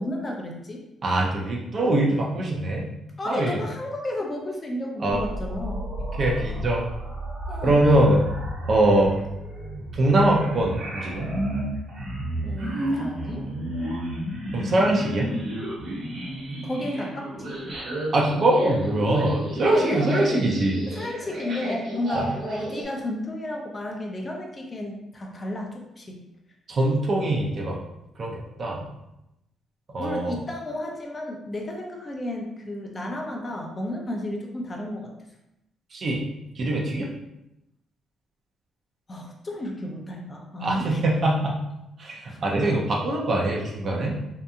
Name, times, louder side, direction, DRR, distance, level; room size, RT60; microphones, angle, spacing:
voice 1, 0.0-0.8 3.2-5.8 7.5-7.8 12.4-13.5 16.6-17.6 19.7-20.4 20.9-26.2 30.0-35.1 39.1-41.0 42.3-42.4, left 1 dB, 30° left, 1 dB, 0.6 m, -32 dB
voice 2, 1.0-2.9 3.3-3.6 5.0-5.2 6.2-6.8 7.6-8.2 8.6-9.2 9.9-11.3 14.5-15.3 18.1-20.8 22.1-22.3 26.7-27.8 28.2-28.8 29.9-30.4 35.9-36.2 36.6-37.1 40.6-41.6 42.0-44.2, right 1 dB, 50° right, -1 dB, 0.5 m, -23 dB
sound 1, 5.1-22.8, right 1 dB, 65° right, 1.1 m, -32 dB
2.7 x 2.5 x 2.3 m, 0.88 s
cardioid pair, 90°, 0 cm